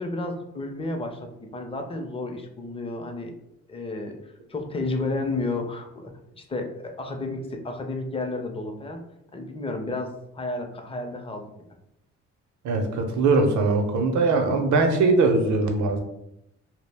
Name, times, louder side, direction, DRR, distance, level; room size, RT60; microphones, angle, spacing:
voice 1, 0.0-3.3 3.7-4.2 4.5-9.0 9.3-11.5, left 2 dB, 20° left, 4 dB, 0.5 m, -32 dB
voice 2, 12.6-16.0, right 3 dB, 75° right, 5 dB, 0.6 m, -21 dB
2.3 x 2.0 x 3.3 m, 0.81 s
cardioid pair, 90°, 30 cm